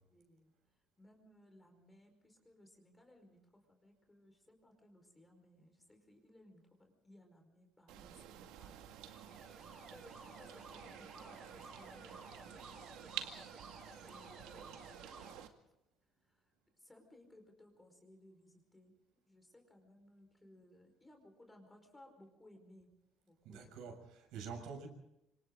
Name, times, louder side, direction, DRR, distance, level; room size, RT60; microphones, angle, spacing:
voice 1, 0.1-0.5 1.0-8.7 9.5-13.2 14.1-15.0 16.2-16.4 16.8-18.9 19.3-22.9 23.2-23.9, left 1 dB, 10° left, 4 dB, 4.9 m, -62 dB
sound 1, 7.9-15.5, right 11 dB, 90° right, 2.1 m, -50 dB
Alarm, 8.8-15.3, right 1 dB, 15° right, 7.8 m, -56 dB
voice 2, 23.5-24.9, right 5 dB, 75° right, 3 dB, 7.0 m, -47 dB
27.5 x 26.0 x 3.9 m, 0.86 s
cardioid pair, 150°, 0 cm